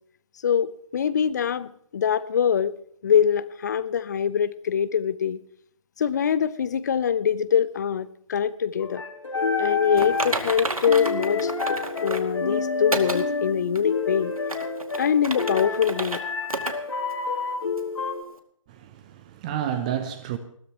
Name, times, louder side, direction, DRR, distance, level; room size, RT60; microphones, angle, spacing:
voice 1, 0.4-2.7 3.0-5.4 6.0-9.0 9.6-14.3 15.0-16.2, left 8 dB, 30° left, 0.7 m, -24 dB
sound 1, 8.8-18.2, left 4 dB, 60° left, 2.8 m, -29 dB
Typing, 10.0-12.3 12.9-13.2 13.7-13.8 14.4-16.2 16.5-16.7 17.1-17.2 17.8-17.9, right 2 dB, 85° right, 2.3 m, -31 dB
voice 2, 18.7-20.4, right 10 dB, 15° right, 0.6 m, -30 dB
20.5 x 16.5 x 3.0 m
figure-of-eight pair, 150°, 18 cm